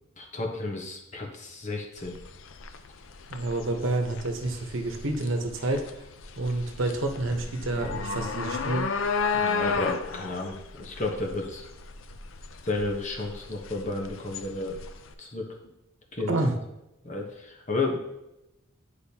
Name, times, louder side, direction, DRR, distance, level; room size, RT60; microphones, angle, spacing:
voice 1, 0.2-2.2 5.6-5.7 9.3-11.6 12.6-14.8 15.2-15.5 16.1-16.3 17.0-18.0, left 2 dB, 35° left, 1 dB, 1.0 m, -32 dB
sound 1, 2.0-15.1, left 5 dB, 75° left, 0.5 m, -33 dB
voice 2, 3.3-5.8 6.4-8.9 16.3-16.5, right 2 dB, 70° right, 3 dB, 1.0 m, -28 dB
10.0 x 5.0 x 2.8 m, 0.91 s
head